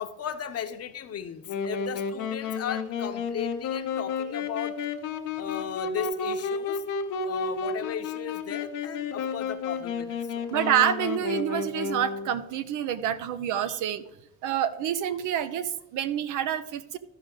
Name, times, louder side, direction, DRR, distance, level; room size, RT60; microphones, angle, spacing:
voice 1, 0.0-4.8 5.4-6.8 7.2-10.5 16.4-16.5, left 8 dB, 55° left, 8 dB, 0.8 m, -36 dB
Wind instrument woodwind instrument, 1.5-12.4, left 5 dB, 90° left, 0.9 m, -32 dB
voice 2, 10.5-14.0 14.4-17.0, right 10 dB, 90° right, 12 dB, 0.7 m, -27 dB
13.5 x 5.0 x 3.7 m, 0.86 s
cardioid pair, 90°, 30 cm